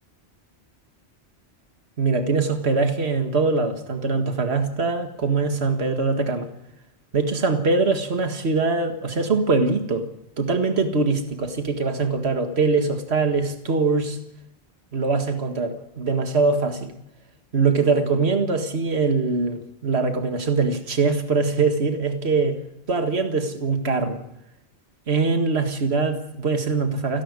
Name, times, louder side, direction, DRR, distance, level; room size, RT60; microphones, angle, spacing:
voice 1, 2.0-6.5 7.1-10.1 10.4-14.2 14.9-16.9 17.5-22.6 22.9-24.2 25.1-27.2, right 4 dB, 70° right, 6 dB, 2.1 m, -22 dB
29.5 x 11.5 x 9.6 m, 0.82 s
omnidirectional pair, 1.1 m